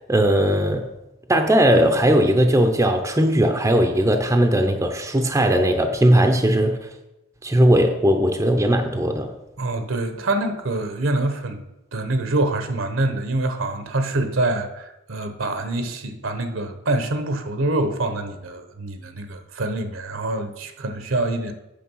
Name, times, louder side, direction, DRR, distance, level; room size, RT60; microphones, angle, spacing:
voice 1, 0.1-0.9 1.3-6.9 7.4-9.3, right 1 dB, 15° right, 0.6 m, -18 dB
voice 2, 9.6-11.6 11.9-21.5, right 2 dB, 70° right, 1.0 m, -25 dB
8.6 x 6.5 x 5.5 m
head